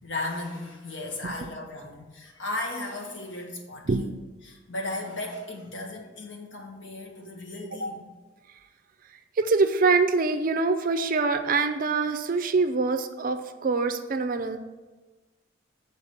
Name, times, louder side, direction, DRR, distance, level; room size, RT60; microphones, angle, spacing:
voice 1, 0.0-3.9 4.4-8.1, left 2 dB, 70° left, 0 dB, 1.4 m, -35 dB
voice 2, 9.4-14.6, right 4 dB, 45° right, 8 dB, 0.4 m, -24 dB
7.0 x 4.1 x 5.8 m, 1.2 s
head